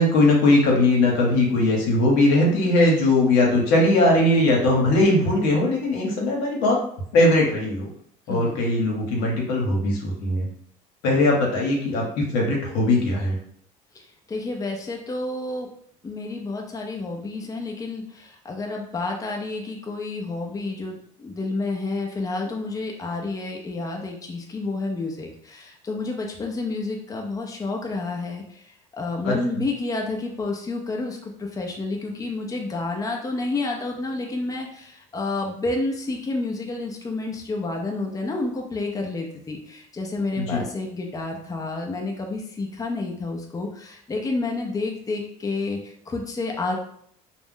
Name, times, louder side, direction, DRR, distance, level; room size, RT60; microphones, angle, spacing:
voice 1, 0.0-6.8 7.1-7.9 8.3-10.4 11.0-13.4 29.2-29.3 40.4-40.6, left 2 dB, 80° left, -1 dB, 0.9 m, -20 dB
voice 2, 8.3-8.6 13.9-14.0 14.3-15.7 16.0-28.6 28.9-46.8, left 3 dB, 20° left, 1 dB, 0.6 m, -30 dB
2.4 x 2.1 x 3.6 m, 0.64 s
supercardioid pair, 85°, 17 cm